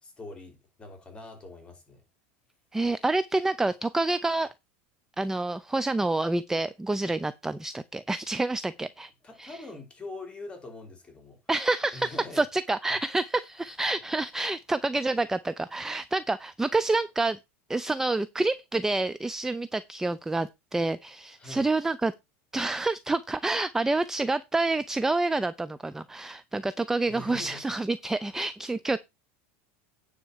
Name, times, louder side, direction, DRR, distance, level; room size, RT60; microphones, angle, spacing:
voice 1, 0.0-2.0 9.2-11.4 11.9-12.4 21.4-21.6 27.1-27.6, left 2 dB, 15° left, 5.1 m, -43 dB
voice 2, 2.7-4.5 5.2-9.1 9.4-9.6 11.5-17.4 17.7-22.1 22.5-29.0, right 2 dB, 5° right, 0.5 m, -28 dB
9.6 x 4.2 x 7.4 m
supercardioid pair, 135°, 7 cm